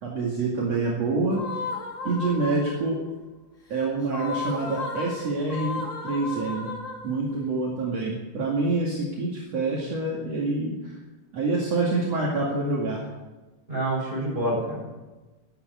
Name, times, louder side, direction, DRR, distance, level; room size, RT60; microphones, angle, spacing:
voice 1, 0.0-1.4 2.0-3.0 3.7-6.7 7.0-10.9 11.3-13.1, right 3 dB, 55° right, -4 dB, 3.3 m, -26 dB
sound 1, 1.3-3.0 4.0-7.4, left 3 dB, 30° left, 2.0 m, -34 dB
voice 2, 13.7-14.8, right 1 dB, 15° right, -3 dB, 6.8 m, -27 dB
13.5 x 11.5 x 8.2 m, 1.2 s
omnidirectional pair, 3.6 m